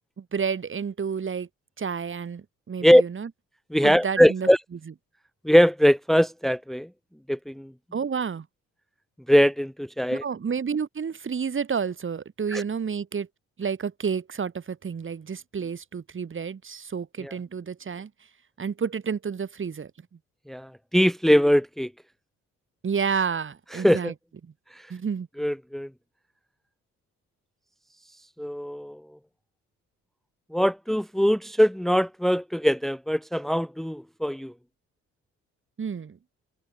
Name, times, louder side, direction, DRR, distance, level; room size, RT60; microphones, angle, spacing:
voice 1, 0.2-1.5 1.8-3.3 3.8-4.8 7.9-8.5 10.1-13.3 13.6-18.1 18.6-19.9 22.8-24.1 24.4-24.5 24.9-25.3 35.8-36.2, right 6 dB, 40° right, 4.8 m, -30 dB
voice 2, 3.7-4.6 5.4-6.9 7.3-7.7 9.3-10.2 12.5-12.6 17.2-17.3 20.5-21.9 23.8-24.1 25.4-25.9 28.4-29.0 30.5-34.5, equal, ahead, 1.4 m, -21 dB
cardioid pair, 90°, 30 cm